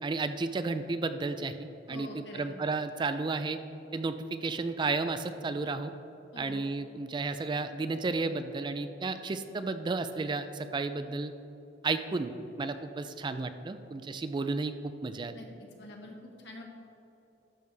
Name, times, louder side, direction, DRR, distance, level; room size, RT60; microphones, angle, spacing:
voice 1, 0.0-3.6 3.9-5.9 6.4-11.3 11.8-15.3, right 3 dB, 25° right, 10 dB, 0.3 m, -33 dB
voice 2, 1.9-2.5 6.3-6.7 15.3-16.6, left 1 dB, 70° left, 0 dB, 1.4 m, -46 dB
12.0 x 6.6 x 3.4 m, 2.9 s
head